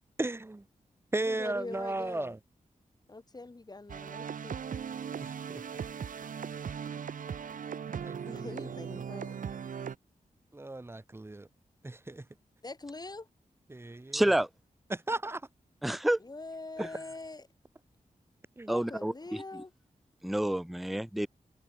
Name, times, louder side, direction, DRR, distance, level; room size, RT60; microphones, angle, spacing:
voice 1, 0.2-0.7 1.1-2.4 5.2-5.6 8.0-8.7 10.5-11.5 11.8-12.2 13.7-14.3 14.9-15.4 16.8-16.9 18.6-18.7, right 2 dB, 15° right, 1.0 m, -36 dB
voice 2, 1.2-2.3 3.1-4.6 8.3-9.4 12.6-13.3 16.2-17.5 18.7-19.7, left 2 dB, 30° left, 4.7 m, -43 dB
sound 1, 3.9-9.9, right 7 dB, 70° right, 0.8 m, -38 dB
voice 3, 14.1-14.5 15.8-16.2 16.8-16.9 18.7-19.1 20.2-21.3, right 1 dB, ahead, 0.5 m, -28 dB
wide cardioid pair, 110°, 14 cm